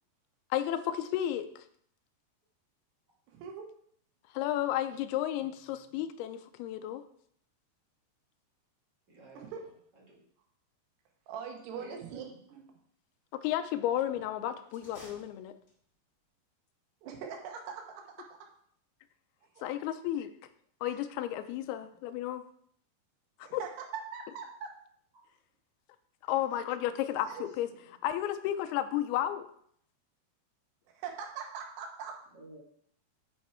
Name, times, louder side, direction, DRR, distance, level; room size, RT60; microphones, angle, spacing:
voice 1, 0.5-1.7 4.3-7.0 13.4-15.5 19.6-20.3 20.8-22.4 23.4-23.6 26.3-27.7 28.0-29.5, left 12 dB, 80° left, 9 dB, 2.4 m, -32 dB
voice 2, 3.3-3.7 9.3-9.6 11.3-12.6 17.0-18.0 19.6-19.8 23.4-24.7 27.3-27.4 30.9-32.1, right 6 dB, 80° right, 2 dB, 3.3 m, -42 dB
voice 3, 9.1-9.7 9.9-10.2 11.7-12.4 19.4-19.5 27.1-27.3 27.6-27.9 32.3-32.6, right 2 dB, 35° right, -3 dB, 1.8 m, -54 dB
sound 1, 14.7-16.0, left 1 dB, 20° left, 1.9 m, -54 dB
8.8 x 6.3 x 4.4 m, 0.65 s
omnidirectional pair, 4.8 m